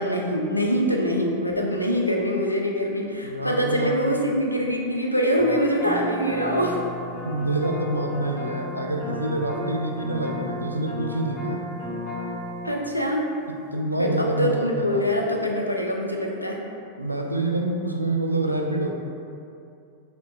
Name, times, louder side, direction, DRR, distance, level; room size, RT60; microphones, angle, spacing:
voice 1, 0.0-6.8 12.6-13.3 14.0-16.6, equal, 85° left, 0 dB, 0.4 m, -24 dB
voice 2, 3.2-4.1 7.2-11.6 13.5-15.1 17.0-19.0, right 2 dB, 85° right, 2 dB, 0.3 m, -27 dB
sound 1, 5.3-12.7, left 1 dB, 50° left, 1.3 m, -34 dB
4.3 x 3.0 x 2.6 m, 2.6 s
figure-of-eight pair, 90°, 0 cm